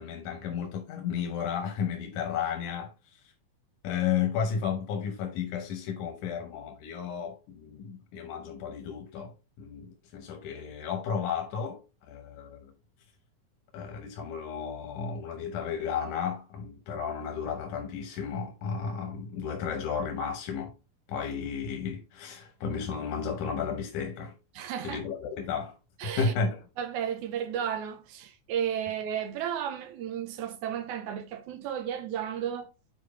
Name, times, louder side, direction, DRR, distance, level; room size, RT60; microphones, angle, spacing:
voice 1, 0.0-3.2 3.8-11.8 12.1-12.7 13.7-20.7 21.1-24.3 24.8-25.8 26.2-26.6, left 6 dB, 90° left, 2.6 m, -33 dB
voice 2, 24.5-25.0 26.0-26.3 26.8-32.7, right 9 dB, 80° right, 2.2 m, -33 dB
9.1 x 4.8 x 3.1 m
omnidirectional pair, 3.5 m